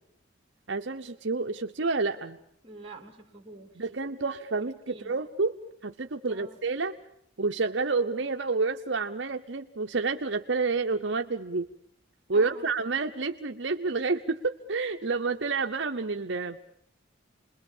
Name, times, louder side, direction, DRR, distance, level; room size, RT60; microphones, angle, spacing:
voice 1, 0.7-2.4 3.8-5.6 5.8-6.9 7.4-11.7 12.3-16.6, right 4 dB, 65° right, 5 dB, 0.9 m, -29 dB
voice 2, 2.6-3.8 4.9-5.2 6.3-6.6 12.3-12.7, right 2 dB, 25° right, 4 dB, 2.8 m, -47 dB
28.5 x 21.5 x 7.3 m, 0.74 s
head